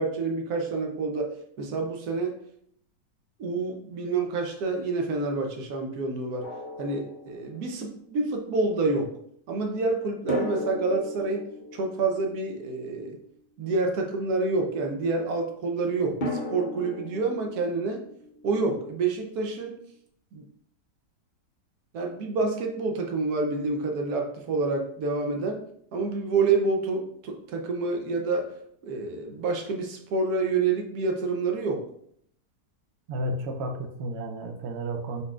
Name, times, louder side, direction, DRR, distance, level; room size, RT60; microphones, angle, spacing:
voice 1, 0.0-2.4 3.4-6.5 6.8-9.1 9.5-11.4 11.7-13.2 13.6-16.2 16.5-18.0 18.4-19.8 20.3-20.5 21.9-25.6 25.9-28.5 28.8-31.8, right 3 dB, 65° right, 3 dB, 1.2 m, -28 dB
Drum, 6.4-7.8 10.3-13.3 16.2-19.1, left 1 dB, 55° left, 0.5 m, -36 dB
voice 2, 33.1-35.2, right 1 dB, 90° right, 4 dB, 0.5 m, -32 dB
5.2 x 4.2 x 2.4 m, 0.67 s
omnidirectional pair, 1.9 m